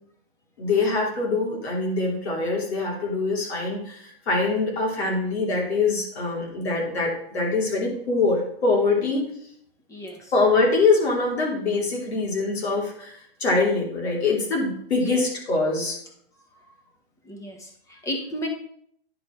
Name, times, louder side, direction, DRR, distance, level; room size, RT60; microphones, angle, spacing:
voice 1, 0.6-9.3 10.3-16.0, left 3 dB, 85° left, -1 dB, 3.1 m, -24 dB
voice 2, 9.9-10.3 14.9-15.2 17.2-18.5, equal, 10° left, 3 dB, 1.1 m, -34 dB
10.0 x 4.2 x 4.4 m, 0.66 s
hypercardioid pair, 150°, 31 cm